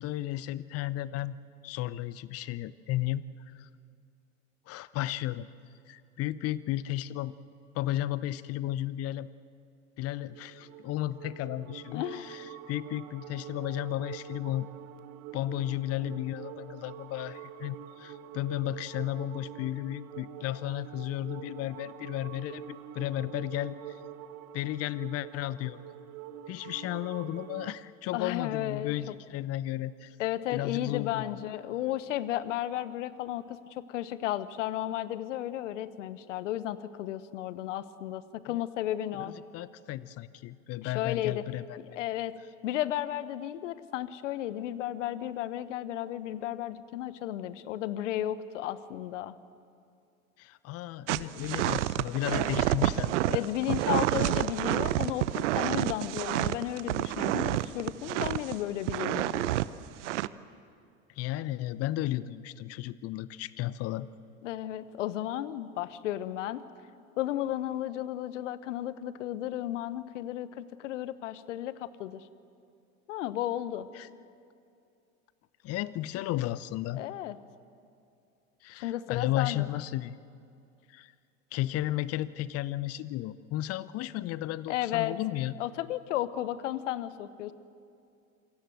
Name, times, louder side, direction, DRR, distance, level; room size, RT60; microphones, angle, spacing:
voice 1, 0.0-1.4 1.6-3.2 3.5-3.7 4.7-5.5 5.9-7.3 7.7-9.3 10.0-14.7 15.3-23.7 24.5-25.8 26.5-30.1 30.5-31.4 38.5-38.6 39.2-42.0 50.4-53.4 61.2-64.1 73.9-74.1 75.6-77.0 78.6-80.2 80.9-81.1 81.5-85.6, left 14 dB, 35° left, 18 dB, 0.8 m, -34 dB
sound 1, 10.2-27.8, right 10 dB, 45° right, 1.2 m, -45 dB
voice 2, 11.9-12.3 28.1-29.1 30.2-39.3 40.8-41.4 41.8-42.3 42.6-49.3 52.3-52.6 53.3-59.6 64.4-66.6 67.2-72.2 73.1-73.9 77.0-77.4 78.8-79.7 84.7-85.2 85.6-87.5, left 13 dB, 60° left, 15 dB, 1.2 m, -34 dB
sound 2, 51.1-58.5 58.9-59.7 60.0-60.3, right 15 dB, 60° right, 0.8 m, -28 dB
27.0 x 23.5 x 7.8 m, 2.5 s
figure-of-eight pair, 80°, 41 cm